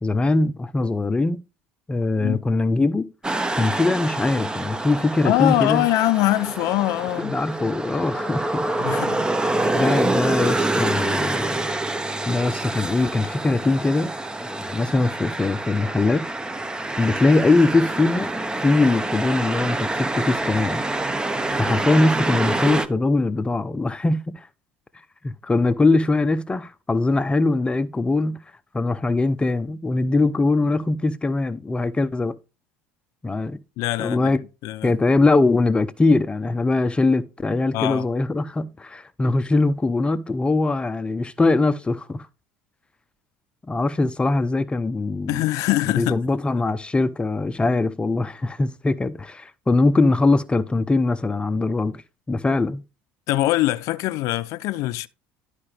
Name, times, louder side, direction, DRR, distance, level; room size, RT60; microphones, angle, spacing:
voice 1, 0.0-1.4 1.9-3.1 3.6-5.9 7.2-9.2 9.7-11.7 12.3-14.1 14.4-16.3 17.0-18.3 18.6-20.8 21.6-24.5 25.2-28.4 28.7-32.3 33.2-33.6 34.0-34.4 34.8-42.3 43.7-45.4 46.0-52.0 52.3-52.8, left 3 dB, 15° left, 0.7 m, -21 dB
sound 1, 3.2-22.9, right 2 dB, 15° right, 0.9 m, -26 dB
voice 2, 5.2-7.4 8.8-9.7 33.8-34.3 34.6-34.9 37.7-38.1 45.3-46.2 53.3-55.1, left 16 dB, 70° left, 0.5 m, -23 dB
12.0 x 4.9 x 3.3 m
supercardioid pair, 80°, 6 cm